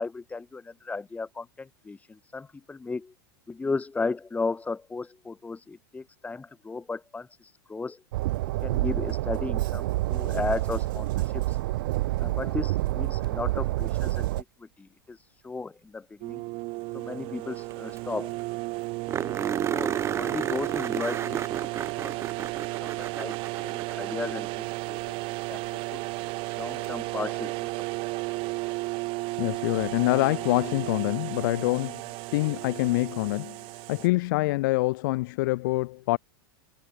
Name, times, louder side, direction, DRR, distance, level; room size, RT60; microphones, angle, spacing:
voice 1, 0.0-3.1 3.5-8.0 8.6-11.6 12.2-16.4 16.9-18.4 19.7-23.4 23.6-26.0 26.6-27.7, left 4 dB, 10° left, 3.7 m, -35 dB
Train, 8.1-14.4, right 18 dB, 65° right, 1.0 m, -28 dB
sound 1, 16.2-34.1, right 25 dB, 50° right, 2.0 m, -33 dB
sound 2, 17.7-17.8 18.0-18.1 18.4-18.5 19.1-24.5 26.8-26.9 29.8-29.9, right 8 dB, 25° right, 1.1 m, -33 dB
voice 2, 29.4-32.0 32.3-33.6 33.9-36.2, left 21 dB, 60° left, 0.6 m, -25 dB
hypercardioid pair, 110°, 12 cm